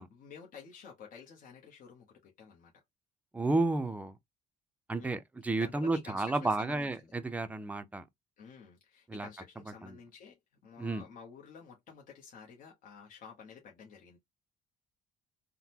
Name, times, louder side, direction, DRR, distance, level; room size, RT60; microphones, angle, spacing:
voice 1, 0.0-2.7 5.0-5.2 5.6-7.1 8.4-10.4 10.6-14.2, left 6 dB, 55° left, 0.9 m, -51 dB
voice 2, 3.3-4.2 4.9-8.0 9.1-9.3 9.8-10.0 10.8-11.0, right 2 dB, 10° right, 0.5 m, -32 dB
3.7 x 2.1 x 2.8 m
cardioid pair, 110°, 17 cm